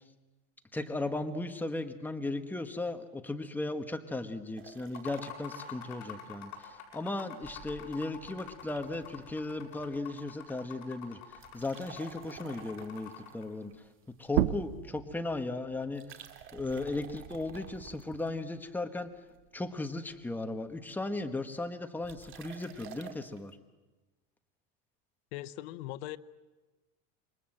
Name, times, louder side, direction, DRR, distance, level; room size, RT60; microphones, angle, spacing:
voice 1, 0.7-13.7 14.2-16.2 16.5-19.1 19.5-23.6, left 2 dB, 5° left, 7 dB, 1.3 m, -36 dB
sound 1, 4.6-6.4 6.7-6.8 7.4-10.3 10.6-10.9 11.3-14.6 15.8-18.8 19.3-19.8 20.1-20.2 20.4-20.5 20.7-21.0 22.0-23.4, right 8 dB, 40° right, 2.4 m, -51 dB
sound 2, 4.8-13.5, left 8 dB, 60° left, 8.0 m, -47 dB
sound 3, 14.3-19.5 19.9-21.7, right 15 dB, 85° right, 0.9 m, -37 dB
voice 2, 25.3-26.2, left 15 dB, 80° left, 13 dB, 0.9 m, -40 dB
28.0 x 23.5 x 7.8 m, 1.2 s
cardioid pair, 145°, 32 cm